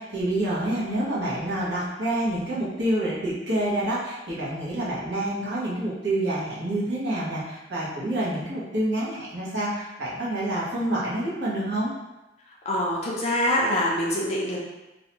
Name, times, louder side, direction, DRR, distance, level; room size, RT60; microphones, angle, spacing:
voice 1, 0.0-11.9, right 1 dB, 60° right, -8 dB, 0.9 m, -27 dB
voice 2, 12.6-14.6, left 1 dB, 35° left, -4 dB, 0.4 m, -24 dB
2.6 x 2.1 x 2.8 m, 1.0 s
head